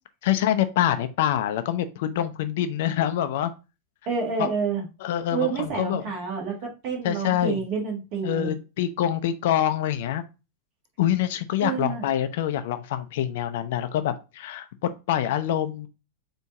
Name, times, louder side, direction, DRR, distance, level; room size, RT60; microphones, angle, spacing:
voice 1, 0.2-3.5 4.4-4.5 5.0-6.0 7.0-7.6 8.2-10.2 11.0-15.9, left 11 dB, 55° left, 10 dB, 0.5 m, -25 dB
voice 2, 4.0-4.8 5.3-8.5 11.6-12.0, right 5 dB, 45° right, -1 dB, 1.6 m, -28 dB
4.5 x 2.7 x 3.6 m, 0.29 s
figure-of-eight pair, 90°, 0 cm